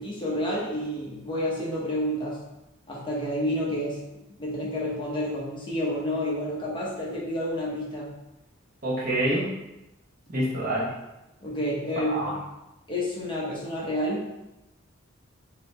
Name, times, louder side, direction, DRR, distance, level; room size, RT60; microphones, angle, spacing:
voice 1, 0.0-2.4 2.9-4.0 4.4-8.1 11.4-12.4 12.9-14.2, equal, 25° left, -5 dB, 0.9 m, -29 dB
voice 2, 8.8-9.5 10.3-10.9 12.0-12.3, right 1 dB, 45° right, -5 dB, 1.0 m, -26 dB
3.9 x 2.9 x 3.2 m, 0.94 s
head